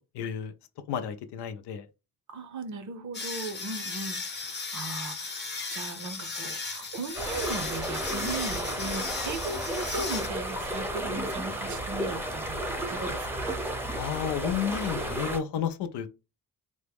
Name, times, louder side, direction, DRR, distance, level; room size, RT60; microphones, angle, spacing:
voice 1, 0.2-0.5 0.9-1.8 13.9-16.1, left 8 dB, 85° left, 0.5 m, -31 dB
voice 2, 2.3-13.6, right 3 dB, 45° right, 0.6 m, -38 dB
sound 1, 3.1-10.9, left 4 dB, 25° left, 0.8 m, -36 dB
sound 2, 7.2-15.4, right 1 dB, 5° right, 0.6 m, -33 dB
3.5 x 2.0 x 3.4 m
cardioid pair, 95°, 40 cm